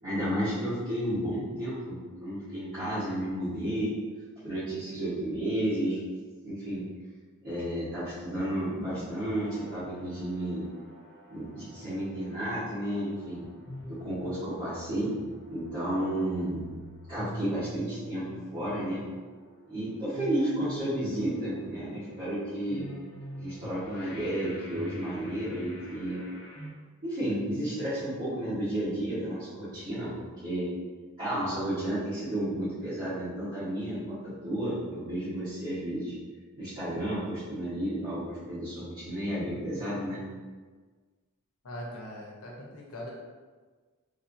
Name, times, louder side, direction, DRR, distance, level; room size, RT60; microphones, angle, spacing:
voice 1, 0.0-3.9 4.4-6.0 6.4-6.8 7.4-10.6 11.3-13.4 13.9-15.1 15.5-16.6 17.1-19.0 19.7-22.9 23.4-26.2 27.0-30.1 30.4-30.7 31.2-36.1 36.6-40.2, right 1 dB, 50° right, -15 dB, 1.3 m, -32 dB
sound 1, 8.3-26.7, equal, 50° left, 1.0 m, -46 dB
voice 2, 41.6-43.1, equal, 80° left, -2 dB, 0.8 m, -41 dB
3.3 x 2.7 x 2.6 m, 1.4 s
head